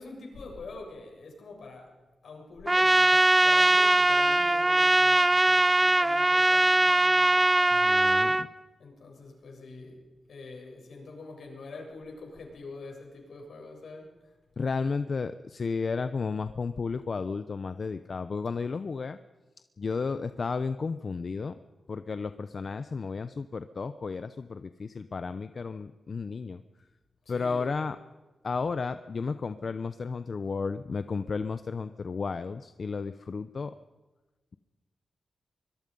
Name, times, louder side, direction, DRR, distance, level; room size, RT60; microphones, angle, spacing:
voice 1, 0.0-1.9 2.2-7.6 8.8-10.0 10.3-14.1 27.3-27.7, left 3 dB, 75° left, 1 dB, 7.4 m, -45 dB
Trumpet, 2.7-8.4, right 1 dB, 15° right, 0.7 m, -21 dB
voice 2, 7.7-8.5 14.6-19.2 19.8-21.6 21.9-26.6 27.3-28.0 28.4-33.8, left 4 dB, 50° left, 11 dB, 0.8 m, -33 dB
24.5 x 22.0 x 5.5 m, 1.2 s
wide cardioid pair, 120°, 0 cm